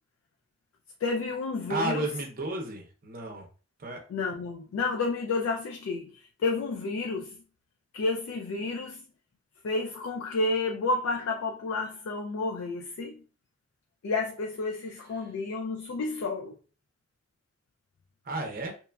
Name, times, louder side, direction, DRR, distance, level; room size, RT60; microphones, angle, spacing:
voice 1, 1.0-2.1 4.1-7.4 7.9-9.0 9.6-13.2 14.0-16.5, left 3 dB, 75° left, 0.3 m, -30 dB
voice 2, 1.7-3.5 3.8-4.0 18.2-18.8, right 1 dB, 40° right, 0.6 m, -33 dB
2.9 x 2.3 x 2.2 m
head